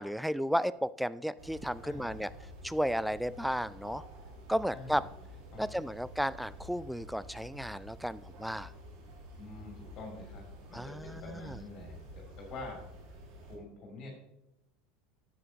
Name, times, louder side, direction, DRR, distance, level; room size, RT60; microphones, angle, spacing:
voice 1, 0.0-2.3 2.6-4.0 4.5-5.0 5.6-8.7 10.7-11.6, equal, ahead, 18 dB, 0.3 m, -33 dB
sound 1, 1.4-13.6, equal, 55° right, 2.0 m, -50 dB
voice 2, 1.8-2.4 4.7-4.9 5.5-5.8 9.4-12.8 13.0-14.1, left 2 dB, 40° left, -1 dB, 2.6 m, -47 dB
12.0 x 7.7 x 2.9 m, 0.89 s
figure-of-eight pair, 75°, 0 cm